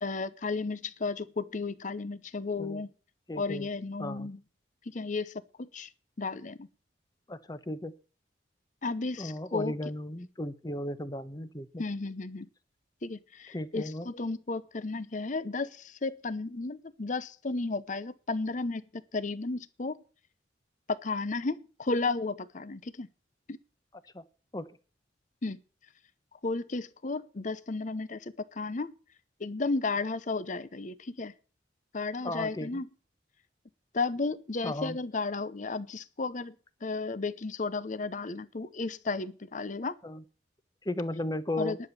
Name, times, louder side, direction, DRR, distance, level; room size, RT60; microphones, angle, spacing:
voice 1, 0.0-2.9 3.4-4.4 4.9-5.9 6.2-6.7 8.8-9.8 11.8-12.5 13.0-18.8 19.1-20.0 20.9-23.1 23.5-23.6 25.4-25.6 26.4-28.9 29.4-31.3 31.9-32.9 33.9-36.6 36.8-40.0 41.6-41.8, left 3 dB, 40° left, 0.7 m, -33 dB
voice 2, 3.3-3.7 4.0-4.3 7.3-7.9 9.2-11.8 13.5-14.1 24.1-24.2 24.5-24.7 32.2-32.8 34.6-35.0 40.0-40.2 40.8-41.8, left 1 dB, 20° left, 0.8 m, -35 dB
11.0 x 7.1 x 8.3 m
head